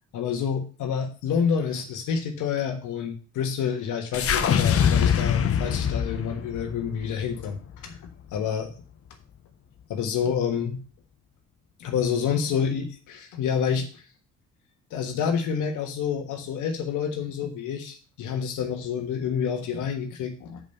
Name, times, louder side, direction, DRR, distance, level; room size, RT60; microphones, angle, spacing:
voice 1, 0.1-8.0 8.3-8.7 9.9-10.8 11.8-14.0 14.9-20.6, left 7 dB, 80° left, 4 dB, 1.4 m, -28 dB
sound 1, 4.1-8.4, left 8 dB, 50° left, 0.9 m, -24 dB
6.4 x 5.4 x 6.7 m, 0.36 s
cardioid pair, 90°, 30 cm